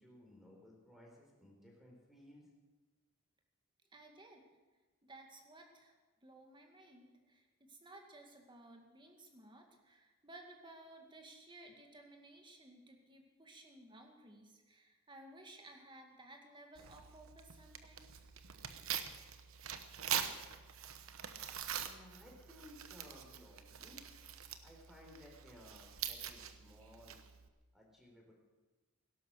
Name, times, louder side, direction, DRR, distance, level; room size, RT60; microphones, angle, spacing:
voice 1, 0.0-2.5 21.8-24.0 24.6-27.2 27.7-28.3, left 1 dB, ahead, -1 dB, 4.2 m, -59 dB
voice 2, 3.9-4.4 5.0-5.9 6.2-18.2, right 2 dB, 20° right, 3 dB, 2.2 m, -57 dB
Tearing, 16.8-27.5, right 9 dB, 65° right, 1.0 m, -44 dB
17.0 x 12.0 x 6.5 m, 1.2 s
head